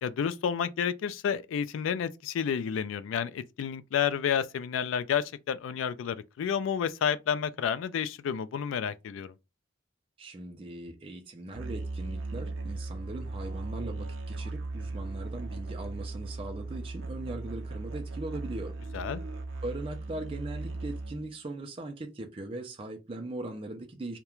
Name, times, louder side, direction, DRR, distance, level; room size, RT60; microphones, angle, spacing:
voice 1, 0.0-9.3 18.9-19.2, left 7 dB, 85° left, 0.3 m, -30 dB
voice 2, 10.2-18.7 19.6-24.2, right 2 dB, 30° right, 0.4 m, -39 dB
Musical instrument, 11.5-21.3, right 2 dB, 85° right, 0.5 m, -37 dB
2.3 x 2.1 x 2.9 m
head